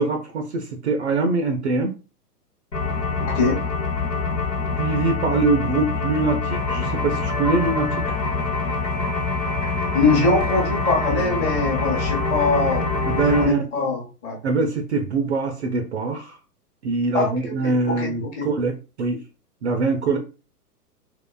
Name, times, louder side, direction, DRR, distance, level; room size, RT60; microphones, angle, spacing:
voice 1, 0.0-1.9 4.8-8.1 13.1-13.6 14.4-16.4 16.8-19.2 19.6-20.2, right 3 dB, 45° right, 5 dB, 0.5 m, -23 dB
sound 1, 2.7-13.4, left 3 dB, 90° left, 1.1 m, -25 dB
voice 2, 3.2-3.6 9.9-12.9 13.3-14.4 17.1-18.5, left 3 dB, 20° left, -2 dB, 0.9 m, -23 dB
3.7 x 2.4 x 2.3 m, 0.34 s
figure-of-eight pair, 110°, 48 cm